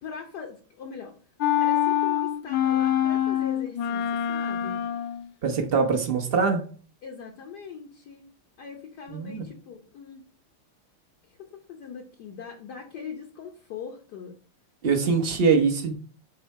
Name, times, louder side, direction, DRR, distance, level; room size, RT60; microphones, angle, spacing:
voice 1, 0.0-1.1 1.6-4.8 7.0-8.3 8.6-10.2 11.4-14.3, left 6 dB, 60° left, 1.3 m, -41 dB
sound 1, 1.4-5.3, left 11 dB, 80° left, 1.5 m, -25 dB
voice 2, 5.4-6.7 9.1-9.5 14.8-15.9, right 5 dB, 40° right, 0.8 m, -23 dB
7.3 x 3.4 x 4.7 m
omnidirectional pair, 2.4 m